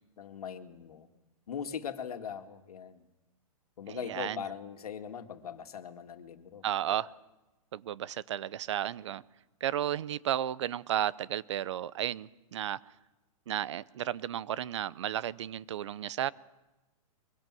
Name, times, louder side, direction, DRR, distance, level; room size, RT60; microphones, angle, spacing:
voice 1, 0.2-1.1 1.5-3.0 3.8-7.1, left 8 dB, 85° left, 8 dB, 2.2 m, -41 dB
voice 2, 3.9-4.4 6.6-7.1 7.7-9.2 9.6-12.8 13.5-16.3, right 11 dB, 50° right, 21 dB, 0.7 m, -33 dB
23.5 x 22.5 x 7.7 m, 1.1 s
hypercardioid pair, 165°, 19 cm